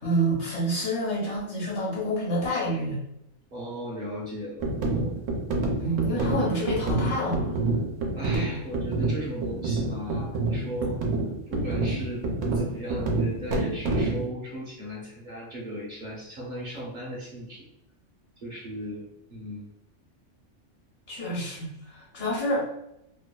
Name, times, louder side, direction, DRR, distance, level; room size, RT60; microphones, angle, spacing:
voice 1, 0.0-3.0 5.8-7.6 8.5-8.6 21.1-22.6, right 1 dB, 70° left, -4 dB, 1.2 m, -28 dB
voice 2, 3.5-5.2 8.1-11.0 11.5-17.7 18.4-19.7, equal, 50° right, -3 dB, 0.7 m, -37 dB
sound 1, 4.6-14.3, right 2 dB, 80° right, 0.9 m, -28 dB
2.8 x 2.2 x 2.2 m, 0.81 s
omnidirectional pair, 1.3 m